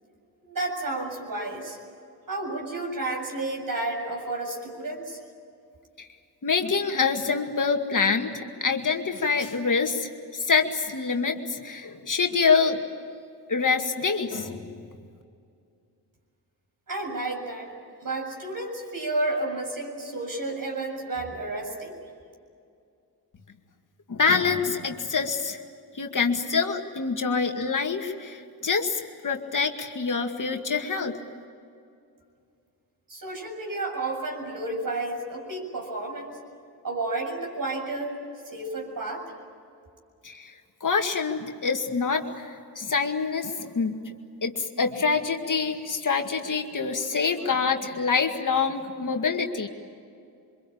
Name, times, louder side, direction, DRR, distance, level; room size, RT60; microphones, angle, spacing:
voice 1, 0.4-1.8 2.3-5.2 16.9-17.7 18.0-22.0 33.1-36.4 36.8-38.2 38.5-39.2, right 2 dB, 55° right, 2 dB, 7.4 m, -31 dB
voice 2, 6.4-12.8 13.5-14.8 24.1-25.6 25.9-31.2 40.2-40.5 40.8-44.0 44.4-49.7, left 5 dB, 50° left, 4 dB, 2.2 m, -26 dB
25.0 x 23.0 x 8.8 m, 2.4 s
cardioid pair, 55°, 40 cm